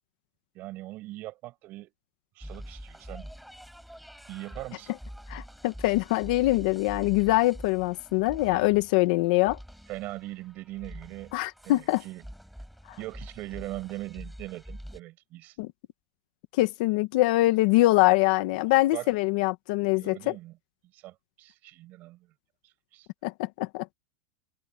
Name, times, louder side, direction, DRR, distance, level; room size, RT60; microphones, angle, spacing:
voice 1, 0.5-1.9 2.4-3.3 4.3-4.9 8.5-8.7 9.9-11.3 11.6-12.2 13.0-15.6 18.9-19.1 20.0-20.5 20.9-22.3 22.6-23.1, right 17 dB, 30° right, 7.5 m, -40 dB
sound 1, 2.4-15.0, equal, ahead, 6.0 m, -45 dB
voice 2, 5.3-9.6 11.3-12.0 12.9-13.0 15.6-15.7 16.5-20.4 23.2-23.9, left 19 dB, 50° left, 1.1 m, -24 dB
supercardioid pair, 175°, 6 cm